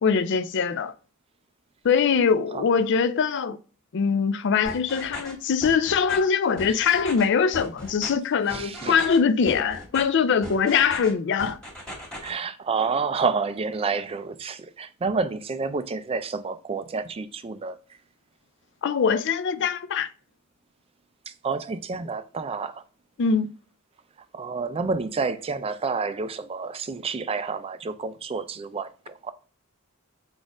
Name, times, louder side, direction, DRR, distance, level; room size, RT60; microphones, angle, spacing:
voice 1, 0.0-0.9 1.8-3.6 3.9-11.6 18.8-20.1 23.2-23.5, left 6 dB, 55° left, 0.4 m, -22 dB
sound 1, 4.6-5.3 5.6-6.2 6.6-7.2 7.5-8.1 8.5-9.2 9.5-10.0 10.4-11.1 11.4-12.3, equal, 5° left, 1.7 m, -38 dB
voice 2, 8.5-9.0 12.2-17.8 21.3-22.8 24.3-29.3, right 4 dB, 25° right, 0.3 m, -29 dB
4.1 x 2.5 x 4.7 m
head